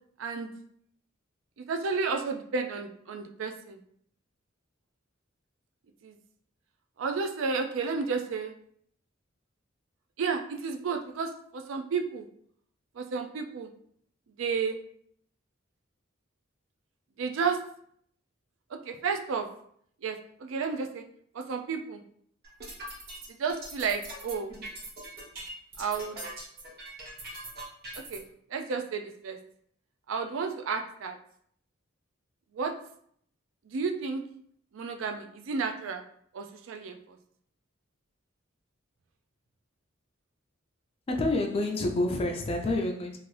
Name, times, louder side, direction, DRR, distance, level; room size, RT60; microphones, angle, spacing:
voice 1, 0.2-0.5 1.6-3.8 6.0-6.2 7.0-8.5 10.2-12.3 12.9-13.7 14.4-14.8 17.2-17.6 18.7-19.5 20.0-21.0 21.3-22.0 23.4-24.5 25.8-26.2 27.9-28.2 28.5-29.4 30.1-31.2 32.5-32.7 33.6-34.2 34.7-36.0 36.3-37.2, right 5 dB, 75° right, 0.4 m, -32 dB
sound 1, 22.4-28.2, right 1 dB, 50° right, 1.0 m, -41 dB
voice 2, 41.1-43.2, left 2 dB, 30° left, 0.3 m, -28 dB
2.6 x 2.5 x 3.1 m
head